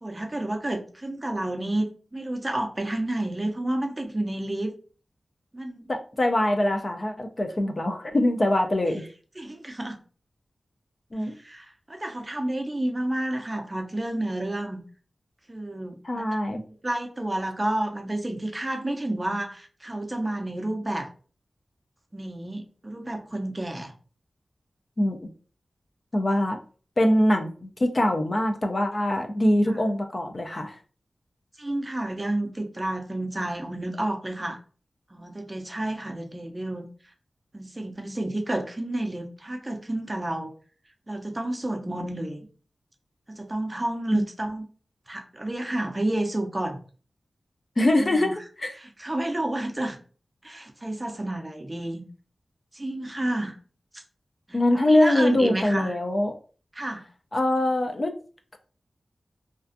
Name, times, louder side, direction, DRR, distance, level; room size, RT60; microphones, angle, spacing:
voice 1, 0.0-4.7 5.5-5.9 9.4-10.0 11.4-14.8 15.5-16.2 16.8-21.1 22.1-23.9 29.7-29.8 31.6-34.6 35.1-36.9 37.5-40.5 41.1-42.5 43.3-44.7 45.1-46.8 48.0-48.3 48.8-50.0 50.4-52.0 52.7-53.6 53.9-54.0 54.5-55.9 56.7-57.0, right 1 dB, 25° right, 4 dB, 0.5 m, -30 dB
voice 2, 5.9-9.0 11.1-11.3 16.0-16.6 25.0-25.2 26.1-26.6 27.0-30.8 44.1-44.3 47.8-48.8 54.5-56.3 57.3-58.2, left 1 dB, 40° left, 4 dB, 0.3 m, -23 dB
2.4 x 2.3 x 2.4 m, 0.40 s
wide cardioid pair, 75°, 0 cm